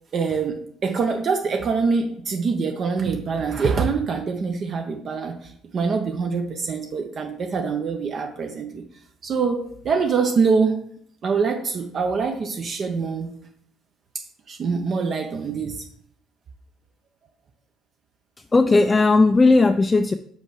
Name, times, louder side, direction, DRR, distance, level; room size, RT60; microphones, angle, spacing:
voice 1, 0.1-8.8 9.2-10.8 11.2-13.3 14.1-15.8, right 5 dB, 45° right, 4 dB, 0.7 m, -24 dB
voice 2, 18.4-20.1, left 3 dB, 20° left, 8 dB, 0.3 m, -17 dB
5.3 x 4.5 x 4.8 m, 0.65 s
cardioid pair, 95°, 0 cm